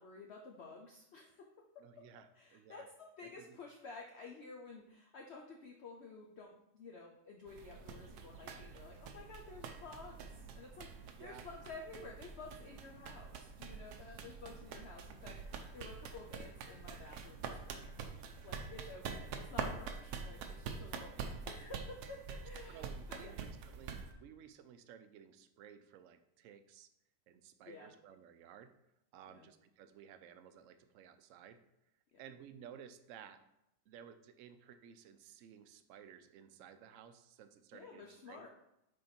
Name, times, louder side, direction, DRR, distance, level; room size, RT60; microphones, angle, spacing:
voice 1, 0.0-2.0 2.3-23.4 27.7-27.9 29.3-29.5 32.1-32.2 37.7-38.5, left 3 dB, 55° left, 0 dB, 0.8 m, -52 dB
voice 2, 1.8-2.9 3.4-3.6 11.2-11.5 22.7-26.9 27.3-28.7 29.1-31.6 32.2-33.4 33.9-38.5, right 8 dB, 65° right, 10 dB, 0.8 m, -56 dB
sound 1, 7.5-24.1, right 5 dB, 85° right, 1.2 m, -46 dB
6.5 x 4.4 x 4.3 m, 0.84 s
omnidirectional pair, 1.6 m